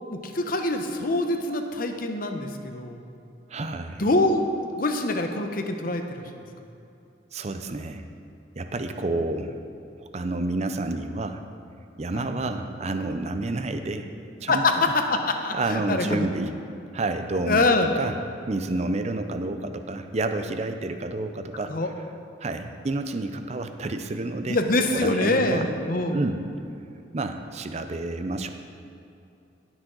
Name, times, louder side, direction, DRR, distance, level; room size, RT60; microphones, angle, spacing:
voice 1, 0.1-3.0 4.0-6.4 12.1-12.3 14.5-16.3 17.5-17.9 21.7-21.9 24.5-26.2, left 2 dB, 50° left, 5 dB, 0.8 m, -24 dB
voice 2, 3.5-4.1 7.3-8.0 8.6-9.6 10.0-11.4 12.0-14.1 14.4-14.6 15.5-16.5 16.9-17.7 18.0-18.2 18.5-21.8 22.4-24.6 24.9-25.7 26.1-26.4 27.1-28.5, right 2 dB, 35° right, 8 dB, 0.5 m, -29 dB
17.5 x 6.3 x 3.8 m, 2.7 s
head